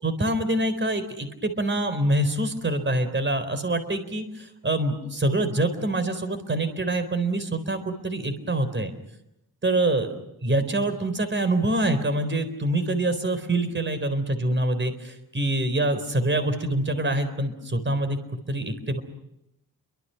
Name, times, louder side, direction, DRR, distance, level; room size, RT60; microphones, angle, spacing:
voice 1, 0.0-4.2 4.6-8.9 9.6-10.1 10.4-18.2 18.5-19.0, right 1 dB, 30° right, 10 dB, 4.1 m, -25 dB
30.0 x 24.5 x 5.9 m, 0.85 s
wide cardioid pair, 120°, 38 cm